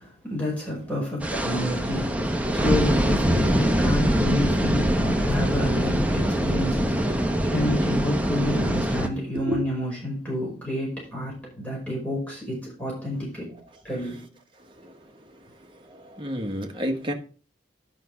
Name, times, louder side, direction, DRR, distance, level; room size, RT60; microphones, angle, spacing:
voice 1, 0.0-13.6 13.8-14.3, left 1 dB, 10° left, 5.1 m, -29 dB
sound 1, 1.2-9.1, right 1 dB, 10° right, 0.9 m, -23 dB
voice 2, 14.6-15.0 15.6-17.1, equal, 30° right, 1.5 m, -31 dB
10.5 x 5.9 x 5.1 m
head